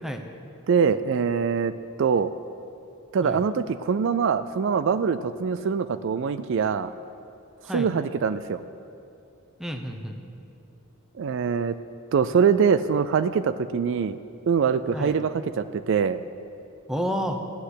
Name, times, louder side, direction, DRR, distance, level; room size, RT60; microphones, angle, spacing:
voice 1, 0.7-1.7 2.0-2.3 3.1-6.9 7.7-8.6 11.2-11.8 12.1-14.2 14.5-16.2, right 6 dB, 60° right, 13 dB, 0.4 m, -23 dB
voice 2, 9.6-10.2 14.9-15.2 16.9-17.4, equal, ahead, 4 dB, 0.8 m, -30 dB
14.0 x 6.5 x 9.7 m, 2.7 s
head